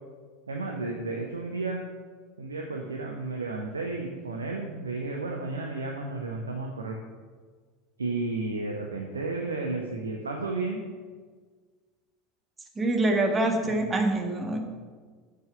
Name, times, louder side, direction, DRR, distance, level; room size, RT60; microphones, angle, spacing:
voice 1, 0.5-1.8 2.4-7.0 8.0-10.8 13.6-13.9, right 3 dB, 75° right, 1 dB, 0.8 m, -32 dB
voice 2, 12.8-14.6, right 2 dB, 20° right, 3 dB, 1.5 m, -25 dB
7.3 x 6.5 x 6.6 m, 1.5 s
figure-of-eight pair, 75°, 0 cm